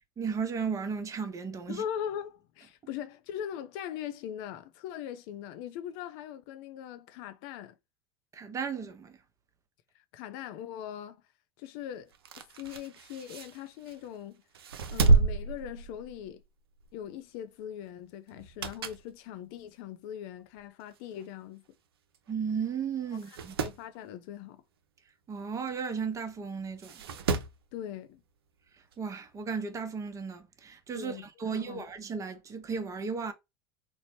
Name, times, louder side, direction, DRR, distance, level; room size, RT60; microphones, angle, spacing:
voice 1, 0.2-1.8 8.3-9.2 22.3-23.6 25.3-27.0 29.0-33.3, right 6 dB, 25° right, 0.6 m, -35 dB
voice 2, 1.7-7.8 9.9-11.2 11.6-12.1 12.4-14.4 14.9-16.4 16.9-21.6 23.1-23.2 23.6-24.6 27.7-28.2 31.0-31.8, left 10 dB, 60° left, 0.4 m, -40 dB
sound 1, 12.1-14.1 14.5-16.4 16.8-17.0 18.3-19.1 19.6-19.7 20.6-20.7 20.9-21.0 21.2-21.3 22.1-22.3 22.6-22.7 23.1-23.8 25.7-25.8 26.8-27.6 28.9-29.0, right 3 dB, 80° right, 0.4 m, -29 dB
2.9 x 2.0 x 2.9 m
hypercardioid pair, 80°, 12 cm